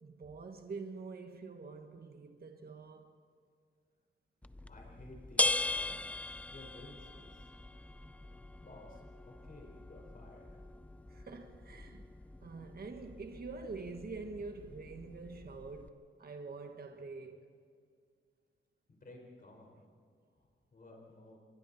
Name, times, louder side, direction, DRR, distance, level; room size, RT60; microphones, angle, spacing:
voice 1, 0.0-3.1 11.1-12.1 12.4-17.5, right 4 dB, 45° right, 1.6 m, -46 dB
sound 1, 4.4-15.9, left 2 dB, 5° left, 0.5 m, -40 dB
voice 2, 4.7-6.0 6.5-7.5 8.6-10.6 18.9-19.7 20.4-21.4, left 2 dB, 40° left, 4.9 m, -55 dB
27.0 x 23.5 x 4.3 m
cardioid pair, 90°, 21 cm